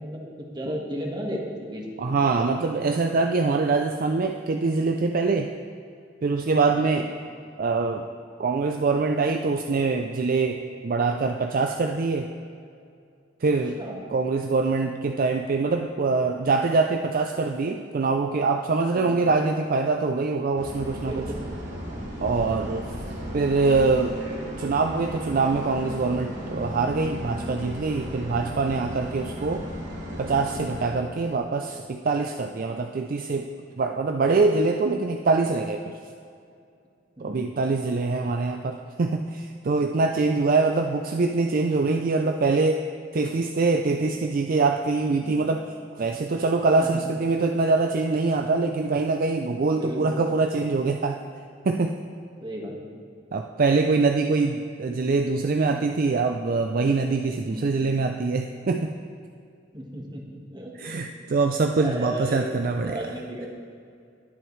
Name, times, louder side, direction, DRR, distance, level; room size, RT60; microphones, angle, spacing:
voice 1, 0.0-2.0 6.7-7.0 13.8-14.0 18.9-19.2 21.0-21.4 22.5-22.9 37.2-37.7 46.8-47.0 49.7-50.2 52.4-53.0 57.4-57.7 59.7-61.0 61.7-63.5, equal, 25° right, 0 dB, 1.5 m, -35 dB
voice 2, 2.0-5.5 6.2-7.1 7.6-8.1 8.4-12.3 13.4-13.8 14.1-21.2 22.2-22.8 23.3-24.2 24.6-29.7 30.2-33.5 33.8-35.9 37.2-42.8 43.1-45.6 46.0-51.2 51.6-51.9 53.3-58.9 60.8-63.0, right 3 dB, 50° right, 5 dB, 0.4 m, -24 dB
sound 1, 20.6-30.9, equal, 65° right, 2.8 m, -35 dB
20.0 x 7.8 x 3.2 m, 2.4 s
head